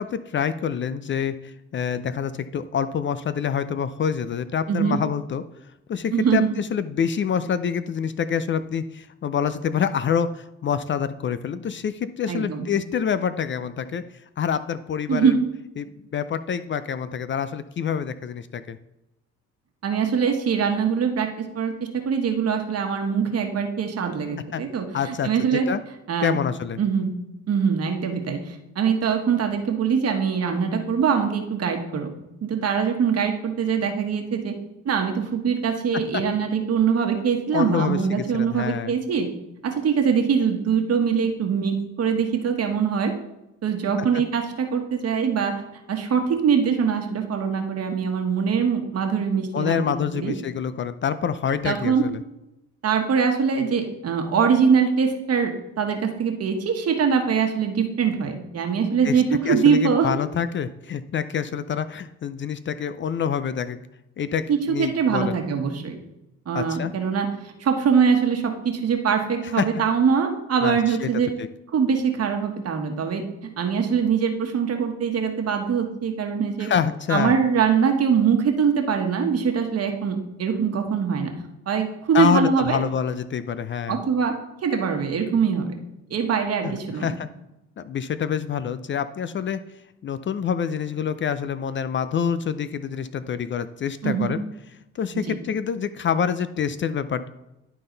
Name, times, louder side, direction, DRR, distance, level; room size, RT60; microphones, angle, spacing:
voice 1, 0.0-5.4 5.9-14.0 14.4-15.3 15.8-18.8 24.5-24.6 24.9-25.8 26.2-26.8 36.1-36.2 37.5-38.0 38.3-38.9 44.0-44.1 49.5-52.2 59.0-63.8 64.2-65.4 66.5-66.9 69.6-69.7 70.6-71.1 71.4-71.5 76.6-77.3 82.1-84.0 86.6-86.7 87.0-87.3 87.8-89.6 90.0-94.4 95.0-97.3, left 7 dB, 40° left, 12 dB, 0.4 m, -26 dB
voice 2, 4.7-5.0 6.1-6.5 12.3-12.7 15.1-15.4 19.8-25.7 26.1-26.4 26.8-27.2 27.5-32.1 32.4-34.5 34.8-39.3 39.6-43.1 43.6-45.6 45.9-50.3 51.6-52.0 52.8-60.1 64.5-65.9 66.5-67.3 67.6-71.3 71.7-76.7 77.1-81.3 81.7-82.8 83.9-84.3 84.6-85.7 86.1-87.1 94.0-94.3 95.1-95.3, right 6 dB, 55° right, 4 dB, 1.3 m, -23 dB
11.0 x 3.9 x 3.9 m, 0.90 s
cardioid pair, 90°, 30 cm